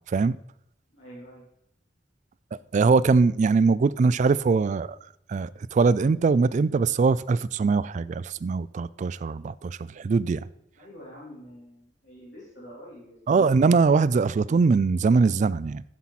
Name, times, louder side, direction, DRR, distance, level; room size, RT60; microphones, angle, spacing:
voice 1, 0.9-1.4 10.8-13.4, equal, 90° left, 3.7 m, -46 dB
voice 2, 2.7-5.0 5.3-10.4 13.3-15.8, right 4 dB, 40° right, 0.3 m, -22 dB
11.5 x 7.3 x 4.1 m
head